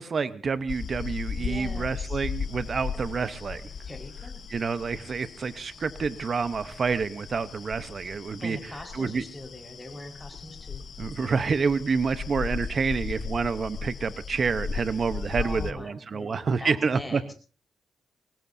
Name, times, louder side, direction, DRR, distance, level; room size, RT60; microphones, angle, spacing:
voice 1, 0.0-3.7 4.5-8.6 8.9-9.2 11.0-17.2, right 5 dB, 45° right, 13 dB, 1.0 m, -28 dB
sound 1, 0.7-15.7, left 6 dB, 50° left, 1.0 m, -37 dB
voice 2, 1.4-2.2 3.8-4.4 8.4-10.8 15.4-17.3, left 1 dB, 10° left, 3 dB, 4.8 m, -42 dB
23.0 x 20.0 x 2.7 m, 0.35 s
cardioid pair, 110°, 0 cm